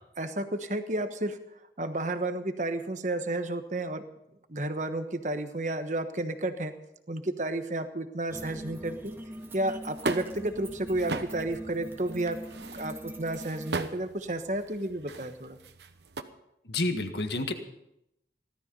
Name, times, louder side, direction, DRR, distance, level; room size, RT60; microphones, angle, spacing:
voice 1, 0.2-1.4 1.8-4.1 4.5-6.7 7.1-9.1 9.5-12.4 12.8-15.6, right 1 dB, 45° right, 8 dB, 1.2 m, -31 dB
sound 1, 8.3-13.7, equal, 15° right, 1.3 m, -42 dB
sound 2, 9.4-16.2, right 3 dB, 80° right, 1.1 m, -39 dB
voice 2, 16.7-17.5, left 2 dB, 75° left, 7 dB, 1.6 m, -29 dB
17.5 x 13.0 x 5.4 m, 0.84 s
head